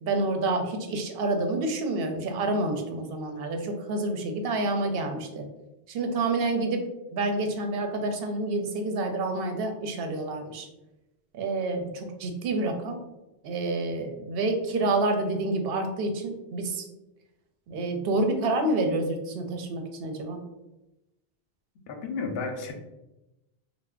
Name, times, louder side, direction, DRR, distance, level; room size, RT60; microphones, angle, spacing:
voice 1, 0.0-5.5 5.9-6.8 7.1-10.7 11.3-13.0 13.4-16.8 17.7-20.4, right 2 dB, 70° right, 5 dB, 0.8 m, -28 dB
voice 2, 21.9-22.7, left 4 dB, 75° left, 4 dB, 0.8 m, -32 dB
3.2 x 2.1 x 3.6 m, 0.97 s
omnidirectional pair, 1.0 m